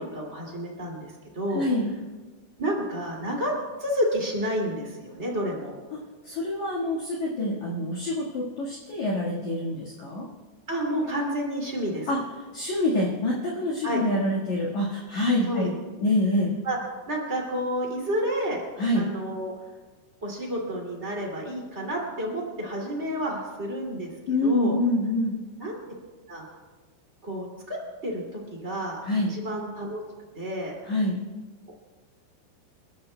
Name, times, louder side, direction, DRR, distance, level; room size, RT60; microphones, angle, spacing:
voice 1, 0.0-1.6 2.6-3.5 3.8-5.7 10.7-12.1 13.8-14.0 15.5-15.7 16.6-16.8 17.1-18.6 18.9-19.5 20.2-24.1 24.4-24.8 25.6-25.8 26.3-26.4 27.2-29.0 29.3-30.0 30.3-30.7, equal, 50° right, -2 dB, 0.7 m, -30 dB
voice 2, 1.5-1.9 5.9-10.3 12.1-12.2 12.5-15.7 16.0-16.5 18.8-19.0 24.3-25.4 29.0-29.3 30.8-31.2, left 1 dB, 60° left, -4 dB, 2.0 m, -26 dB
28.5 x 14.0 x 2.2 m, 1.3 s
omnidirectional pair, 5.9 m